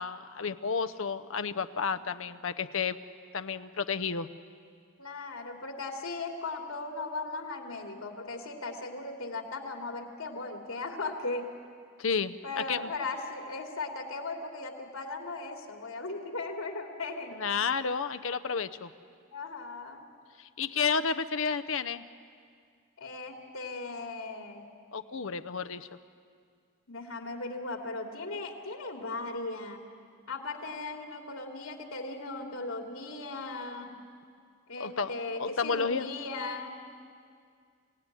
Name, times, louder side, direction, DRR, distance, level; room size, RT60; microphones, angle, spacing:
voice 1, 0.0-3.0 3.3-4.3 12.0-12.3 12.7-12.9 17.4-18.9 20.6-22.0 24.9-25.9 34.8-35.1 35.4-36.1, left 5 dB, 70° left, 10 dB, 0.7 m, -31 dB
voice 2, 5.0-11.5 12.4-17.4 19.3-20.1 23.0-24.6 26.9-29.8 30.3-34.0 34.7-36.7, left 3 dB, 85° left, 2 dB, 2.7 m, -37 dB
27.0 x 17.5 x 9.9 m, 2.2 s
head